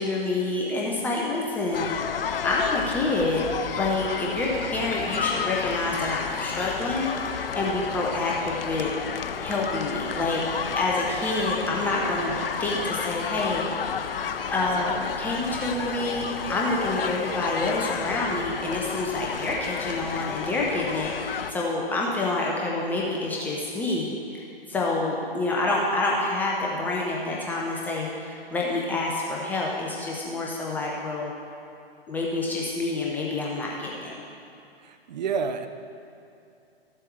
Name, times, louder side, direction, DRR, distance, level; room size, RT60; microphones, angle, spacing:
voice 1, 0.0-3.5 3.8-8.9 9.4-10.4 10.8-12.3 12.6-13.9 14.5-31.3 32.1-34.1, left 2 dB, 5° left, -3 dB, 0.4 m, -28 dB
sound 1, 1.7-21.5, left 7 dB, 65° left, 0.6 m, -31 dB
voice 2, 34.8-35.7, right 6 dB, 45° right, 8 dB, 0.7 m, -29 dB
13.5 x 7.6 x 4.6 m, 2.6 s
figure-of-eight pair, 120°, 31 cm